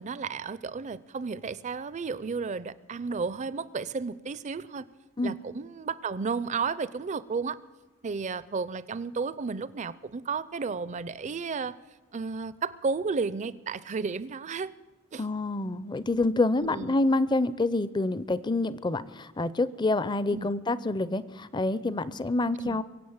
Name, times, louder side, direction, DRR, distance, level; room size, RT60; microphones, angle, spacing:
voice 1, 0.0-4.9 5.2-7.6 8.0-11.8 12.1-14.7 15.1-15.2 16.6-17.0 20.3-20.5 22.6-22.8, right 5 dB, 35° right, 18 dB, 0.5 m, -33 dB
voice 2, 15.2-22.8, left 2 dB, 20° left, 17 dB, 0.5 m, -27 dB
23.0 x 8.2 x 7.2 m, 1.3 s
head